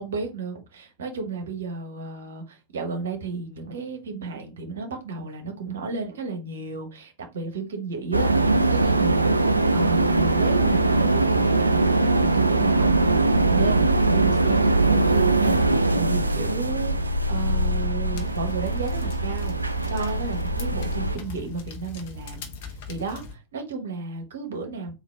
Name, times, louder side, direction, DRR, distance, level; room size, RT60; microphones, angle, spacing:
voice 1, 0.0-19.5 19.9-24.9, right 4 dB, 65° right, 0.9 m, -33 dB
sound 1, 8.1-21.2, right 2 dB, 85° right, 0.3 m, -21 dB
sound 2, 18.2-23.3, left 3 dB, 50° left, 0.7 m, -40 dB
3.8 x 2.5 x 3.3 m
figure-of-eight pair, 90°, 0 cm